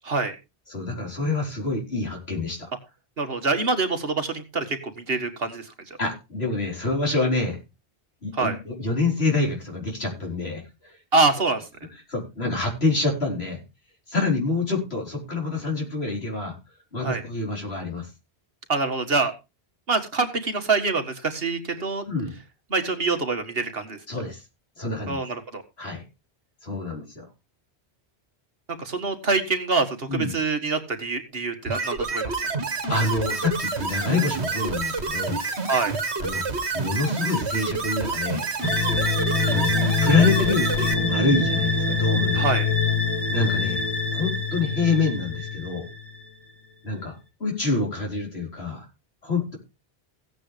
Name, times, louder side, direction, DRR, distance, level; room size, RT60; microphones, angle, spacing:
voice 1, 0.0-0.4 3.2-6.0 8.3-8.6 11.1-11.7 17.0-17.2 18.7-19.3 19.9-22.1 22.7-24.0 25.1-25.6 28.8-32.3 35.7-35.9 42.3-42.7, right 3 dB, 60° right, 6 dB, 2.0 m, -25 dB
voice 2, 0.7-2.7 6.0-7.6 8.2-11.0 12.1-13.6 14.1-16.6 16.9-18.1 22.0-22.3 24.1-24.4 24.8-25.2 25.8-26.0 26.6-27.3 30.1-30.3 32.9-35.4 36.2-38.5 39.4-42.4 43.3-43.8 44.1-45.9 46.8-48.9 49.2-49.6, left 3 dB, 70° left, 1 dB, 4.8 m, -26 dB
sound 1, 31.7-40.9, right 4 dB, 80° right, 2.0 m, -28 dB
sound 2, 38.6-46.1, left 4 dB, 20° left, 3.7 m, -24 dB
16.0 x 9.2 x 3.3 m, 0.26 s
omnidirectional pair, 1.1 m